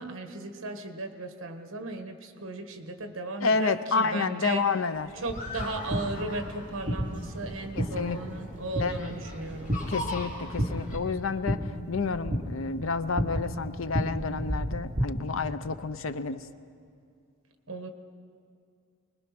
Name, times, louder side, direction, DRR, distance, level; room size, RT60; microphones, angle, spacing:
voice 1, 0.0-4.6 5.2-9.8 17.7-17.9, right 2 dB, 60° right, 6 dB, 1.5 m, -36 dB
voice 2, 3.4-5.1 7.7-8.2 8.8-9.1 9.9-16.5, left 4 dB, 65° left, 12 dB, 0.7 m, -30 dB
sound 1, 4.9-11.0, left 1 dB, 35° left, 2.6 m, -41 dB
sound 2, 5.3-15.1, equal, 35° right, 2.3 m, -33 dB
24.0 x 20.5 x 6.0 m, 2.3 s
head